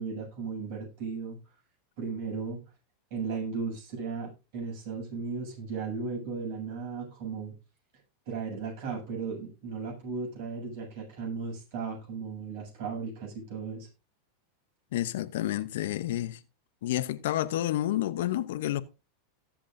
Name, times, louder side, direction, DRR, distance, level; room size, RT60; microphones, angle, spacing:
voice 1, 0.0-1.4 2.0-2.6 3.1-7.5 8.3-13.9, right 5 dB, 60° right, 8.0 m, -36 dB
voice 2, 14.9-16.4 16.8-18.8, left 13 dB, 75° left, 0.8 m, -29 dB
18.0 x 7.5 x 2.6 m
hypercardioid pair, 115°, 0 cm